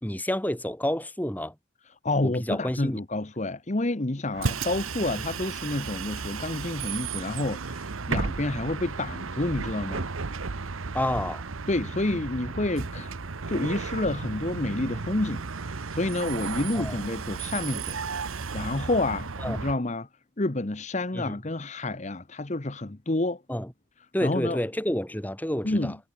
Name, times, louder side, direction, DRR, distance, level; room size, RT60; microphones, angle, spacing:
voice 1, 0.0-1.5 2.2-3.0 10.9-11.4 16.7-17.0 19.4-19.6 21.1-21.4 23.5-23.7 24.1-26.0, left 1 dB, 10° left, 1.7 m, -29 dB
voice 2, 2.0-10.1 11.7-13.1 13.5-18.0 18.3-20.1 20.4-23.4 24.2-24.6 25.6-26.0, left 2 dB, 35° left, 1.0 m, -29 dB
Bus, 4.3-19.8, right 4 dB, 85° right, 1.0 m, -34 dB
head